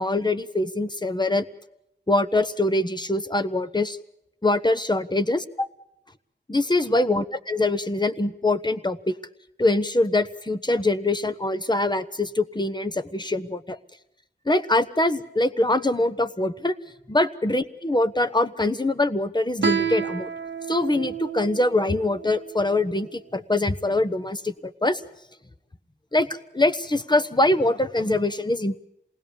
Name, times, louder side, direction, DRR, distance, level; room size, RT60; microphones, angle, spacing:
voice 1, 0.0-1.4 2.1-4.0 4.4-5.4 6.5-9.1 9.6-13.8 14.5-16.8 17.1-20.3 20.7-25.0 26.1-26.3 26.5-28.8, left 2 dB, 25° left, 10 dB, 1.2 m, -23 dB
Guitar, 19.6-22.9, right 7 dB, 70° right, 1.0 m, -30 dB
27.0 x 19.5 x 7.1 m, 0.80 s
wide cardioid pair, 75°, 19 cm